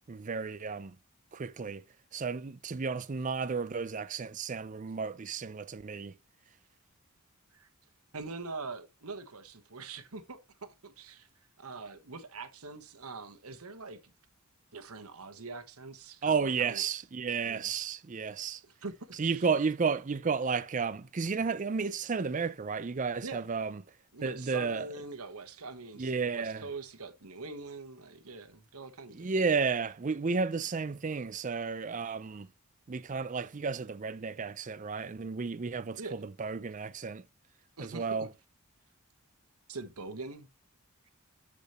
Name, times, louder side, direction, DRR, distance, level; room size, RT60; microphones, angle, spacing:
voice 1, 0.1-1.0 1.3-1.8 2.1-6.1 16.2-18.6 19.2-23.8 24.2-24.9 26.0-26.7 29.1-32.5 32.9-37.2 37.8-38.3, right 5 dB, 35° right, 0.5 m, -32 dB
voice 2, 8.1-11.3 11.6-14.1 14.7-16.8 17.4-17.7 18.6-19.5 23.2-23.5 24.1-29.3 36.0-36.2 37.8-38.3 39.7-40.5, right 3 dB, 80° right, 1.3 m, -43 dB
13.5 x 5.0 x 3.1 m
head